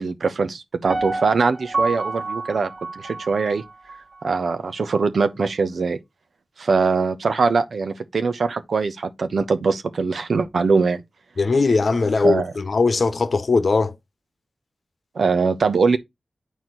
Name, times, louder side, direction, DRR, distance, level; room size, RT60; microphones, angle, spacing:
voice 1, 0.0-3.6 4.2-6.0 6.6-11.0 12.2-12.5 15.1-16.0, right 4 dB, 85° right, 1.0 m, -22 dB
Piano, 0.9-4.0 4.4-4.5, right 3 dB, 65° right, 2.2 m, -28 dB
voice 2, 11.4-13.9, left 4 dB, 70° left, 0.9 m, -19 dB
9.2 x 4.6 x 3.9 m
cardioid pair, 40°, 0 cm